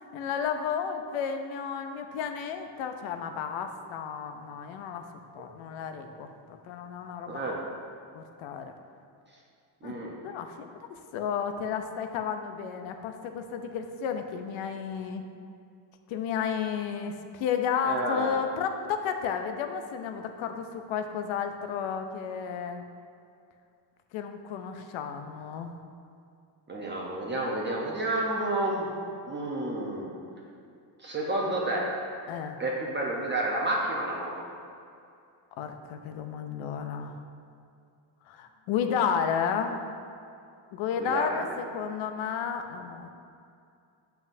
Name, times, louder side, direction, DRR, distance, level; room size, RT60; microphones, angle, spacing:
voice 1, 0.1-5.1 5.3-7.4 8.1-8.7 9.8-10.0 10.2-15.2 16.1-22.8 24.1-25.8 32.3-32.6 35.6-37.2 38.3-39.8 40.7-43.1, left 7 dB, 85° left, 6 dB, 0.7 m, -32 dB
voice 2, 9.8-10.2 17.8-18.4 26.7-28.9 29.3-30.1 31.0-31.9 32.6-34.3 41.0-41.5, right 1 dB, 25° right, -3 dB, 0.8 m, -30 dB
7.3 x 5.7 x 2.7 m, 2.4 s
cardioid pair, 110°, 46 cm